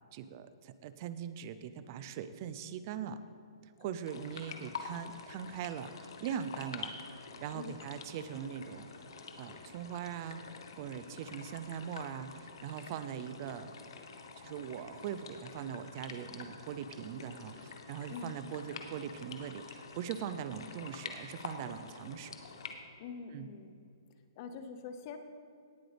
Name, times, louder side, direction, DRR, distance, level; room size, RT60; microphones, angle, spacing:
voice 1, 0.1-3.2 3.6-8.9 9.4-10.4 10.8-13.7 14.4-22.4 23.3-23.5, right 8 dB, 40° right, 12 dB, 0.5 m, -41 dB
sound 1, 4.1-22.7, left 5 dB, 70° left, 1.3 m, -47 dB
voice 2, 18.1-18.4 23.0-23.8 24.4-25.2, left 5 dB, 40° left, 8 dB, 0.9 m, -44 dB
18.0 x 7.8 x 3.4 m, 2.5 s
hypercardioid pair, 145°, 3 cm